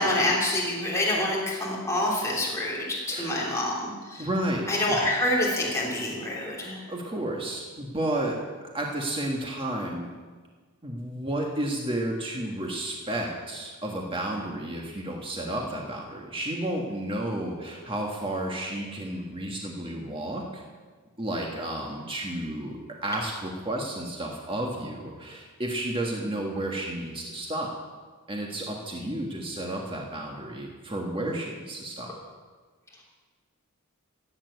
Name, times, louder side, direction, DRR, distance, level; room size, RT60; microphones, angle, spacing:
voice 1, 0.0-4.3 4.7-6.8, left 1 dB, 15° left, -5 dB, 3.2 m, -27 dB
voice 2, 4.2-5.0 6.9-8.4 8.7-10.1 10.8-20.6 21.2-27.7 28.3-32.2, right 1 dB, 25° right, -1 dB, 1.6 m, -32 dB
15.5 x 8.8 x 8.2 m, 1.5 s
head